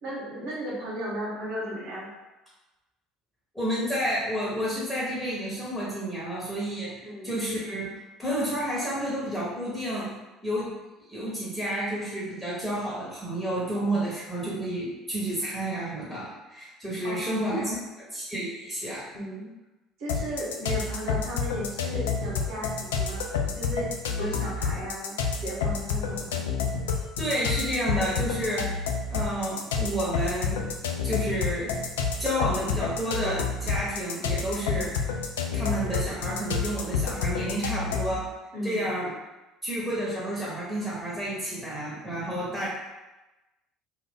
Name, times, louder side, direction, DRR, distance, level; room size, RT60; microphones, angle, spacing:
voice 1, 0.0-2.1 7.0-7.4 17.0-17.7 19.1-19.5 20.0-23.3 23.5-23.9 24.2-26.4 38.5-38.9, equal, 60° right, -6 dB, 1.3 m, -35 dB
voice 2, 3.5-7.9 8.2-10.1 10.4-10.7 11.1-19.1 27.2-28.7 29.1-30.6 31.0-31.8 32.2-35.1 35.5-38.3 38.6-39.1 39.6-42.7, right 1 dB, ahead, -7 dB, 1.2 m, -30 dB
sound 1, 20.1-38.2, left 5 dB, 75° left, 0.3 m, -29 dB
2.6 x 2.5 x 3.5 m, 1.1 s
figure-of-eight pair, 60°, 0 cm